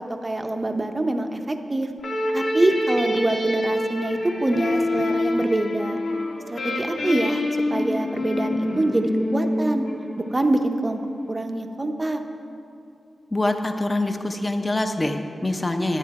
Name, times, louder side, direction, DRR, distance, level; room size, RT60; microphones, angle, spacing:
voice 1, 0.0-1.9 2.3-6.0 6.5-7.4 7.7-9.8 10.2-11.0 11.3-12.2, right 2 dB, 20° right, 6 dB, 0.6 m, -25 dB
sound 1, 2.0-10.5, left 1 dB, 90° left, 1.9 m, -26 dB
voice 2, 13.3-16.0, left 2 dB, 20° left, 5 dB, 0.6 m, -25 dB
11.0 x 10.0 x 4.7 m, 2.6 s
wide cardioid pair, 165°, 0 cm